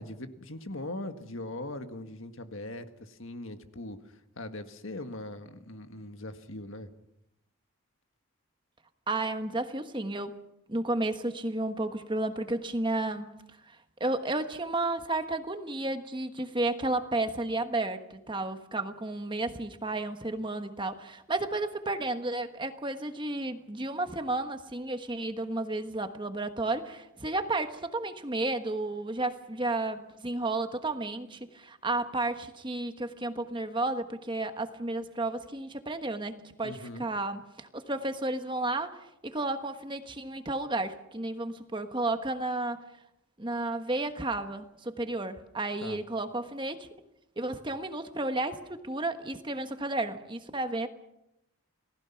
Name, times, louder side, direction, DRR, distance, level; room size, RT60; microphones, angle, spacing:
voice 1, 0.0-6.9 36.6-37.1 45.8-46.0, left 1 dB, 60° left, 8 dB, 1.7 m, -40 dB
voice 2, 9.1-10.3 10.7-13.3 13.7-42.8 43.4-46.9 47.4-50.9, right 2 dB, 20° right, 8 dB, 1.3 m, -32 dB
29.0 x 19.0 x 5.8 m, 0.84 s
head